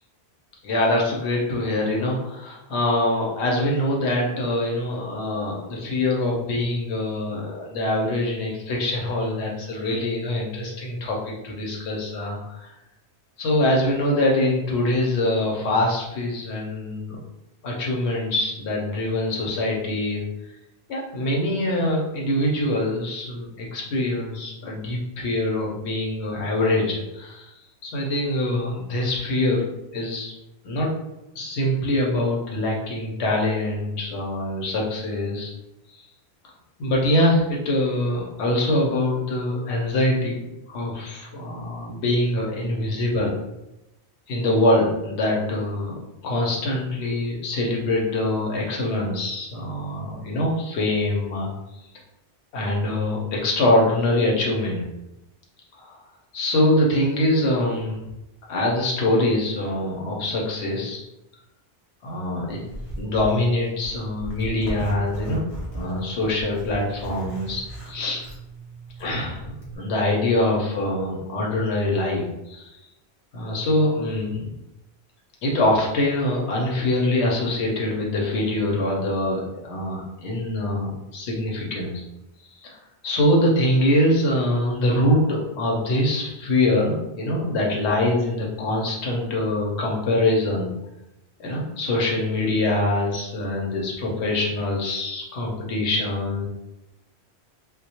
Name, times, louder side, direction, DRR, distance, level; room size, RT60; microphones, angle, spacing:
voice 1, 0.6-12.6 13.4-17.2 17.6-20.2 20.9-29.7 29.9-30.3 30.6-30.9 31.3-35.5 35.9-36.0 36.8-43.3 44.3-45.9 46.2-51.5 51.8-51.9 52.5-54.8 55.8-56.0 56.3-58.0 58.5-61.0 62.0-62.6 63.0-65.4 65.7-68.2 69.0-72.8 73.3-74.5 75.4-81.9 82.5-82.8 83.0-90.7 91.4-96.5, left 1 dB, 90° left, -2 dB, 0.9 m, -24 dB
Zipper (clothing), 62.5-69.8, right 1 dB, 40° left, 0.7 m, -37 dB
2.2 x 2.0 x 2.7 m, 0.92 s
omnidirectional pair, 1.1 m